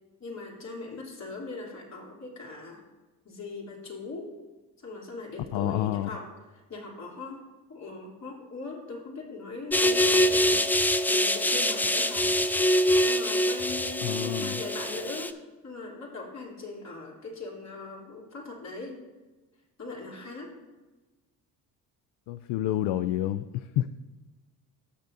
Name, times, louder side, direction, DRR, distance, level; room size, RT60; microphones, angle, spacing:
voice 1, 0.2-2.8 3.2-4.3 4.8-12.3 13.0-15.3 15.6-19.0 19.8-20.5, left 3 dB, 35° left, -2 dB, 3.2 m, -40 dB
voice 2, 5.5-6.1 14.0-14.6 22.3-23.9, left 13 dB, 65° left, 11 dB, 0.5 m, -29 dB
sound 1, 9.7-15.3, left 1 dB, 5° left, 0.3 m, -24 dB
14.5 x 6.6 x 2.7 m, 1.2 s
supercardioid pair, 70°, 44 cm